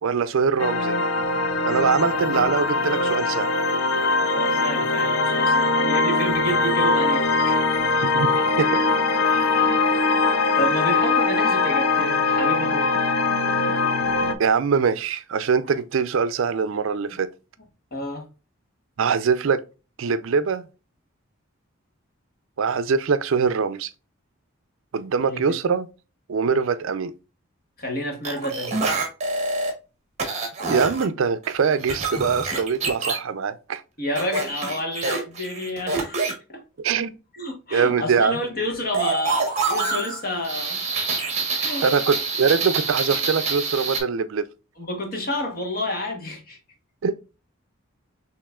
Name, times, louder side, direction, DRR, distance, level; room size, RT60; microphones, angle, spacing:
voice 1, 0.0-1.0 1.6-3.5 8.0-8.3 8.6-8.9 13.6-13.7 14.4-17.3 19.0-19.6 20.0-20.6 22.6-23.9 24.9-25.9 26.3-27.1 30.7-33.8 36.8-37.1 37.7-38.4 41.8-44.5 47.0-47.1, right 5 dB, 65° right, 0.4 m, -23 dB
sound 1, 0.6-14.3, left 3 dB, 80° left, 0.6 m, -21 dB
voice 2, 4.3-7.8 8.3-8.5 9.2-10.1 10.6-12.9 17.9-18.3 25.2-25.5 27.8-28.9 34.0-36.2 36.5-36.6 37.3-40.8 41.6-42.0 44.8-46.6, equal, 45° left, 1.4 m, -30 dB
sound 2, 28.2-29.7 30.2-31.0 31.4-33.2 34.1-36.3 38.9-44.0, right 4 dB, 30° right, 1.2 m, -26 dB
6.4 x 3.0 x 2.3 m
head